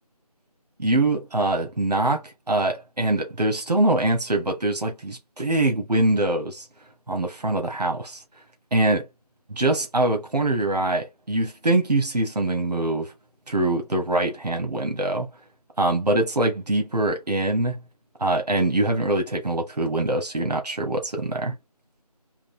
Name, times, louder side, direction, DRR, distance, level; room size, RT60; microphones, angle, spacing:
voice 1, 0.8-6.7 7.1-8.2 8.7-9.1 9.5-13.1 13.5-15.3 15.8-17.8 18.2-21.5, right 2 dB, 85° right, 1.3 m, -23 dB
3.9 x 2.4 x 3.0 m
figure-of-eight pair, 180°, 20 cm